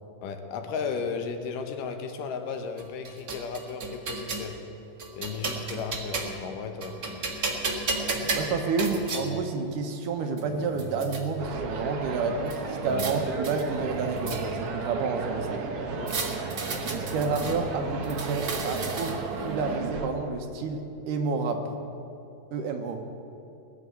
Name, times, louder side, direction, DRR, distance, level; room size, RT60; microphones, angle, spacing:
voice 1, 0.2-4.6 5.2-7.3 12.8-12.9 15.9-16.3, left 5 dB, 75° left, 6 dB, 2.6 m, -35 dB
sound 1, 2.8-4.5 5.0-6.5 6.8-9.2 10.0-10.1 10.4-11.2 12.5-13.1 13.4-14.7 16.1-17.6 18.0-19.4, right 3 dB, 35° right, 1.6 m, -33 dB
voice 2, 8.0-15.6 16.9-21.6 22.5-23.0, right 4 dB, 75° right, 5 dB, 2.6 m, -30 dB
sound 2, 11.4-20.1, right 4 dB, 60° right, 1.7 m, -34 dB
20.0 x 6.9 x 9.5 m, 2.8 s
omnidirectional pair, 3.9 m